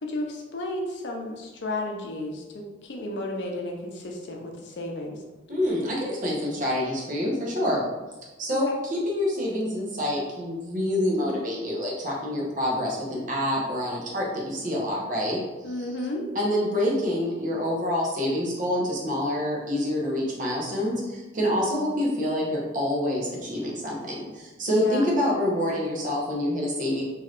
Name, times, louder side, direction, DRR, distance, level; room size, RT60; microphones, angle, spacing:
voice 1, 0.0-5.2 8.5-8.8 15.6-16.3 24.7-25.1, left 2 dB, 70° left, 1 dB, 0.6 m, -33 dB
voice 2, 5.5-7.8 8.4-15.4 16.3-27.0, left 1 dB, 45° right, -4 dB, 0.8 m, -27 dB
3.1 x 2.7 x 2.4 m, 1.1 s
head